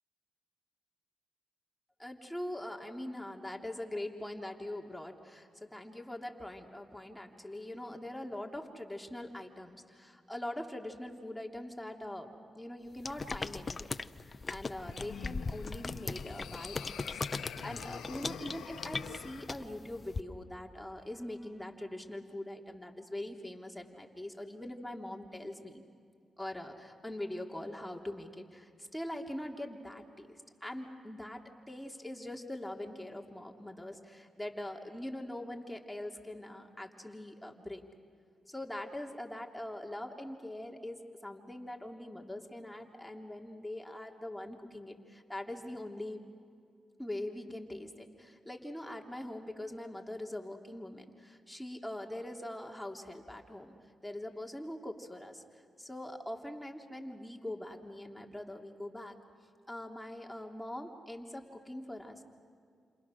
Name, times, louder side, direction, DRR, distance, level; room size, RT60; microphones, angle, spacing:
voice 1, 2.0-13.9 14.2-25.8 26.4-37.8 38.5-46.2 47.0-53.7 54.0-59.1 59.7-62.2, left 1 dB, 5° left, 1 dB, 2.9 m, -43 dB
sound 1, 13.0-20.2, left 4 dB, 40° left, 0.8 m, -39 dB
sound 2, 14.7-19.5, left 8 dB, 85° left, 1.2 m, -46 dB
30.0 x 27.0 x 6.4 m, 2.2 s
supercardioid pair, 60°, 0 cm